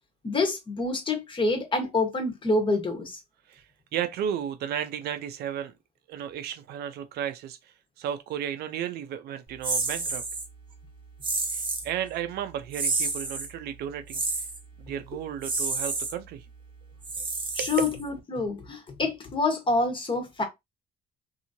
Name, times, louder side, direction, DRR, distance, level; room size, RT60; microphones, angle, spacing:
voice 1, 0.2-3.2 17.5-20.4, left 3 dB, 30° left, 1.1 m, -27 dB
voice 2, 3.9-5.7 6.1-7.6 8.0-10.2 11.5-14.2 14.8-16.4 17.6-17.7, right 9 dB, 70° right, 0.5 m, -33 dB
sound 1, 9.6-10.5 11.2-11.9 12.7-13.5 14.1-14.6 15.4-16.1 17.0-18.2, right 3 dB, 30° right, 0.8 m, -30 dB
2.8 x 2.7 x 2.7 m
cardioid pair, 110°, 17 cm